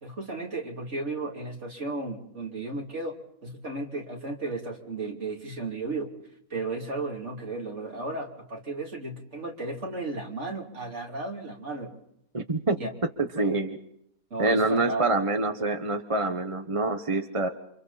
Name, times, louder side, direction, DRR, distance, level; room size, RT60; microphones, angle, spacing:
voice 1, 0.0-3.2 3.4-6.1 6.5-12.0 12.8-12.9 13.4-13.5 14.3-15.1, right 2 dB, 50° right, 3.4 m, -34 dB
voice 2, 12.3-12.8 13.2-13.8 14.4-17.5, right 3 dB, 25° right, 1.1 m, -26 dB
29.0 x 26.5 x 4.2 m
omnidirectional pair, 1.5 m